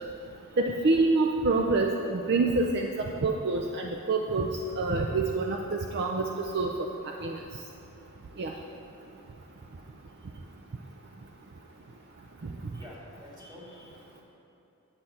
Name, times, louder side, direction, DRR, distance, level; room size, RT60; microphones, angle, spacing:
voice 1, 0.6-4.5 4.8-6.7 7.2-7.4 8.4-8.5, right 3 dB, 50° right, 2 dB, 0.5 m, -26 dB
voice 2, 12.7-14.2, left 1 dB, 20° right, -5 dB, 2.0 m, -48 dB
9.8 x 7.9 x 4.3 m, 3.0 s
head